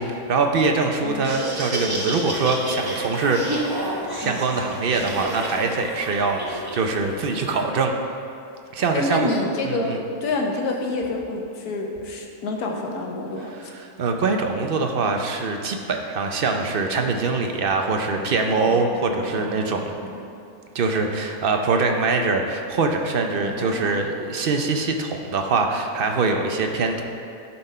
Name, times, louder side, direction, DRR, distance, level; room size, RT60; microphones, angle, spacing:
voice 1, 0.0-3.4 4.2-7.9 8.7-9.3 9.7-10.0 14.0-19.9 20.7-27.0, right 4 dB, 55° right, 3 dB, 0.6 m, -23 dB
Laughter, 1.1-7.6, right 1 dB, 15° right, 0.9 m, -30 dB
voice 2, 8.9-13.5 18.6-19.0 19.4-19.6 20.1-20.2 23.4-23.9, left 2 dB, 85° left, 1 dB, 1.5 m, -28 dB
11.5 x 4.3 x 5.4 m, 2.6 s
omnidirectional pair, 1.6 m